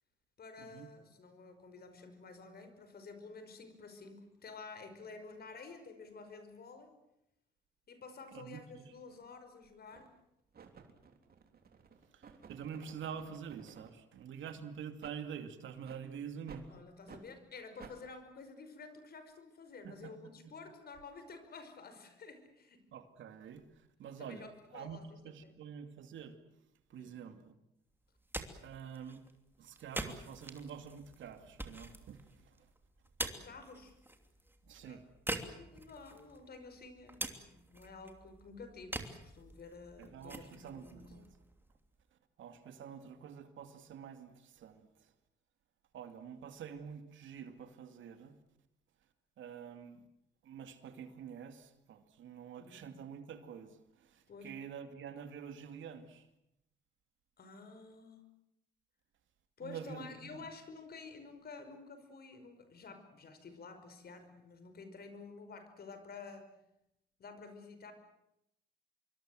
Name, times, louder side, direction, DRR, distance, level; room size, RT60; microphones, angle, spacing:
voice 1, 0.4-6.9 7.9-10.1 16.7-22.9 24.2-25.5 26.9-27.2 33.3-34.0 34.8-35.0 35.5-41.1 52.6-52.9 54.3-54.5 57.4-58.3 59.6-66.5 67.2-67.9, left 4 dB, 50° left, 5.5 m, -51 dB
voice 2, 8.3-8.9 12.1-16.7 19.8-20.1 20.4-20.5 22.9-25.0 25.2-26.4 26.9-27.6 28.6-29.2 29.6-32.7 34.6-35.0 40.0-41.3 42.4-45.1 45.9-48.3 49.4-50.1 50.4-56.3 59.6-60.4, right 7 dB, 75° right, 2.6 m, -47 dB
sound 1, 9.1-9.2 9.9-10.2 10.5-13.9 14.4-14.6 15.0-15.2 15.8-16.0 16.5-16.7 17.1-17.2 17.8-18.0, right 6 dB, 50° right, 3.6 m, -55 dB
sound 2, 28.0-42.0, right 1 dB, 10° right, 2.9 m, -46 dB
26.0 x 23.5 x 7.9 m
cardioid pair, 90°, 20 cm